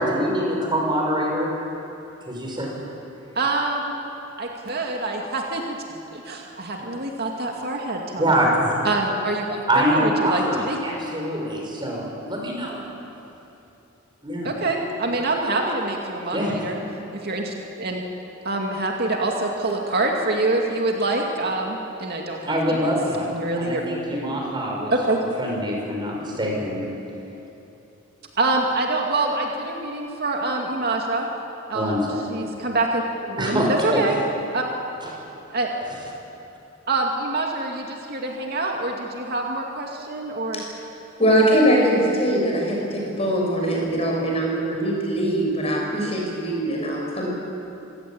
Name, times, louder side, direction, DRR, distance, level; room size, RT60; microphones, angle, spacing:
voice 1, 0.0-1.5 2.3-2.7 8.2-8.7 9.7-12.8 14.2-14.5 16.3-16.7 22.5-23.3 23.6-24.9 25.2-26.8 31.7-32.0 33.4-34.0 35.0-35.1, equal, 25° right, -1 dB, 5.7 m, -24 dB
voice 2, 3.4-3.9 4.4-5.8 6.1-8.3 8.8-10.8 14.4-16.8 17.2-18.0 18.4-22.9 23.3-23.8 24.9-25.2 28.4-31.3 31.7-34.2 34.5-34.6 35.5-35.7 36.9-40.6, right 2 dB, 55° right, 0 dB, 2.4 m, -25 dB
voice 3, 41.2-47.3, equal, 30° left, -2 dB, 6.3 m, -22 dB
26.5 x 16.5 x 8.9 m, 3.0 s
head